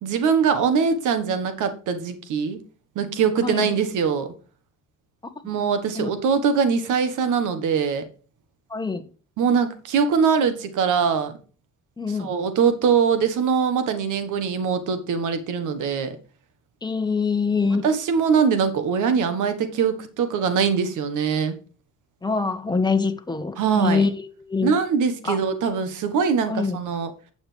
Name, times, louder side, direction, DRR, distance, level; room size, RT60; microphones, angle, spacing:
voice 1, 0.0-2.6 2.9-4.3 5.4-8.1 9.4-11.3 12.2-16.2 17.8-21.6 23.6-24.0 24.6-27.1, right 6 dB, 85° right, 1.5 m, -22 dB
voice 2, 8.7-9.0 12.0-12.3 16.8-17.8 22.2-24.2 24.5-24.7 25.2-25.4 26.5-26.8, left 4 dB, 15° left, 1.3 m, -24 dB
9.1 x 7.0 x 3.4 m
cardioid pair, 90°, 30 cm